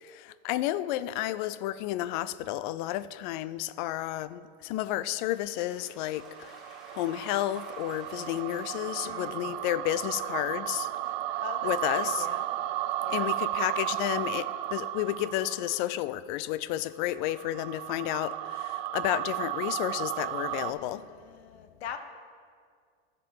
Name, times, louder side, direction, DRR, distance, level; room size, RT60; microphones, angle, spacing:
voice 1, 0.0-10.9 11.3-12.3 13.1-21.1, left 14 dB, 50° left, 0.4 m, -32 dB
sound 1, 4.8-9.9, right 1 dB, ahead, 2.2 m, -55 dB
sound 2, 6.1-15.9 17.0-20.7, right 14 dB, 60° right, 0.5 m, -34 dB
voice 2, 9.0-9.5 11.0-12.4 13.0-13.3 20.6-22.0, left 7 dB, 80° left, 1.0 m, -43 dB
14.5 x 5.4 x 4.5 m
supercardioid pair, 135°, 32 cm